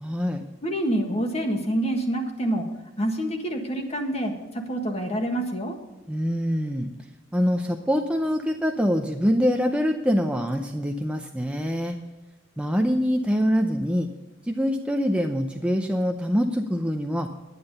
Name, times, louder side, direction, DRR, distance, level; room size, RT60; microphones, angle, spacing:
voice 1, 0.0-0.4 6.1-6.9 7.3-12.0 12.6-14.1 14.5-17.3, equal, 5° right, 3 dB, 0.6 m, -24 dB
voice 2, 0.6-2.7 3.0-5.7, right 1 dB, 30° left, 3 dB, 1.6 m, -27 dB
11.0 x 9.8 x 5.3 m, 1.1 s
head